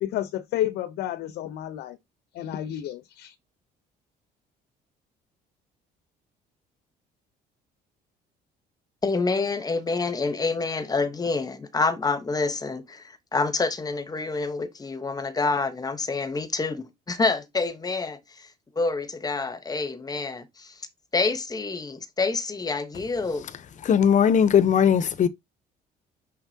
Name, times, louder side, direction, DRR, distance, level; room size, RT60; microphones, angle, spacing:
voice 1, 0.0-2.0 2.3-3.3, left 12 dB, 80° left, 0.8 m, -30 dB
voice 2, 9.0-13.0 13.3-18.5 18.8-20.7 21.1-23.5, left 3 dB, 20° left, 1.1 m, -27 dB
voice 3, 23.8-25.3, left 8 dB, 45° left, 0.8 m, -19 dB
6.5 x 5.8 x 2.8 m
cardioid pair, 110°, 17 cm